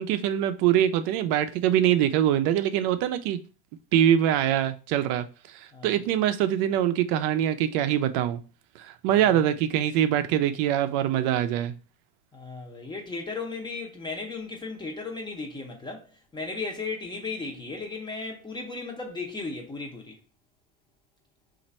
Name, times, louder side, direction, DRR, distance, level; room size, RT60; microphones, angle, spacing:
voice 1, 0.0-3.4 3.9-5.3 5.8-8.4 8.8-11.7, right 11 dB, 60° right, 0.5 m, -23 dB
voice 2, 12.3-16.1 16.3-20.1, left 3 dB, 10° left, 0.6 m, -35 dB
3.1 x 2.6 x 4.0 m
supercardioid pair, 135°, 43 cm